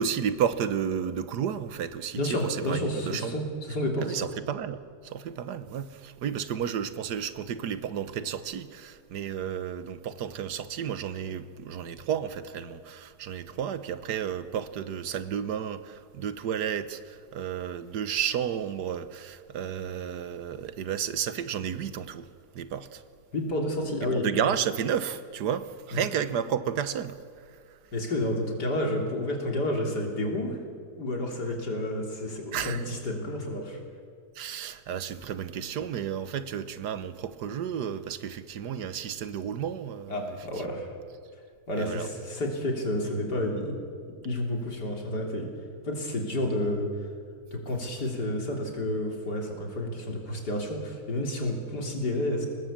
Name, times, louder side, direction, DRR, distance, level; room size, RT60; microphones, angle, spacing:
voice 1, 0.0-3.4 4.0-22.3 22.5-23.0 24.1-27.2 32.5-32.8 34.3-40.4 41.8-42.1, right 8 dB, 90° right, 1.5 m, -32 dB
voice 2, 2.2-4.2 23.3-24.3 25.9-26.0 27.9-30.6 31.0-33.8 40.1-40.9 41.7-43.8 44.2-45.5 45.8-46.9 47.5-52.5, left 1 dB, 85° left, 3.9 m, -30 dB
23.0 x 19.0 x 7.5 m
omnidirectional pair, 1.7 m